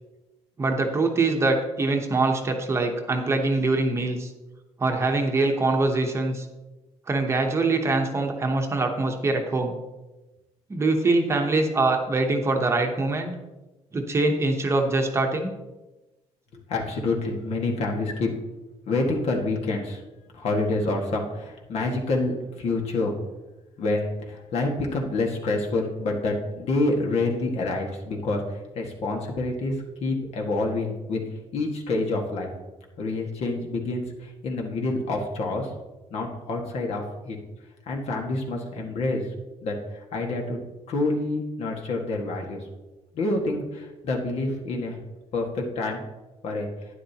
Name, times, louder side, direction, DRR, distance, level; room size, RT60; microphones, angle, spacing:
voice 1, 0.6-4.3 4.8-6.4 7.1-9.8 10.7-13.3 13.9-15.5, right 3 dB, 20° right, 3 dB, 0.9 m, -23 dB
voice 2, 16.7-18.4 18.9-20.0 20.3-23.1 23.8-29.7 30.0-31.2 31.5-32.5 33.0-35.7 36.1-37.4 37.9-39.3 39.6-39.8 40.1-40.6 40.9-42.6 43.1-45.0 45.3-46.0 46.4-46.7, left 2 dB, 60° left, 1 dB, 1.7 m, -27 dB
11.5 x 10.0 x 2.9 m, 1.1 s
cardioid pair, 160°, 12 cm